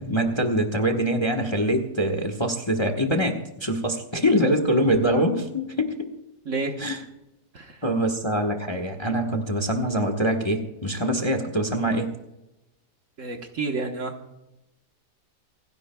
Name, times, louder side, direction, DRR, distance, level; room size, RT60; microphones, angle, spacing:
voice 1, 0.0-6.1 6.8-7.0 7.8-12.1, equal, 20° left, 4 dB, 1.0 m, -24 dB
voice 2, 6.4-6.7 7.5-7.8 13.2-14.2, right 3 dB, 50° right, 4 dB, 1.5 m, -30 dB
28.5 x 10.5 x 2.3 m, 0.92 s
omnidirectional pair, 1.8 m